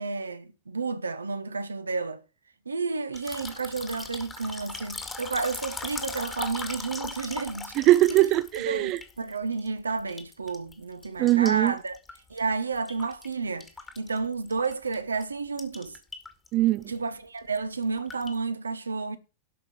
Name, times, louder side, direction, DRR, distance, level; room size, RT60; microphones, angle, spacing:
voice 1, 0.0-2.2 2.6-7.7 8.1-8.2 8.6-12.0 12.3-13.7 14.0-16.0 16.8-19.2, right 4 dB, 75° right, 1.0 m, -31 dB
sound 1, 3.1-9.7 10.0-10.7 11.0-13.3 13.6-15.0 15.2-15.3 15.6-16.5 16.8-17.0 17.4-18.4, left 3 dB, 15° left, 2.0 m, -39 dB
voice 2, 7.8-9.0 11.2-11.7 16.5-16.8, right 16 dB, 40° right, 0.6 m, -21 dB
12.5 x 5.3 x 6.9 m
figure-of-eight pair, 90°, 0 cm